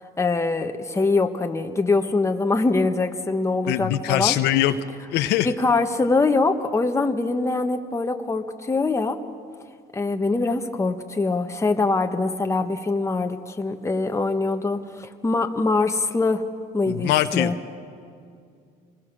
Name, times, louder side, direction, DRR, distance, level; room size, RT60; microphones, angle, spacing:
voice 1, 0.2-4.4 5.4-9.2 9.9-16.4 16.7-17.5, left 3 dB, 15° left, 5 dB, 1.4 m, -23 dB
voice 2, 3.7-4.7 5.1-5.5 16.9-17.5, left 14 dB, 85° left, 9 dB, 0.9 m, -22 dB
27.0 x 20.5 x 6.2 m, 2.3 s
cardioid pair, 110°, 17 cm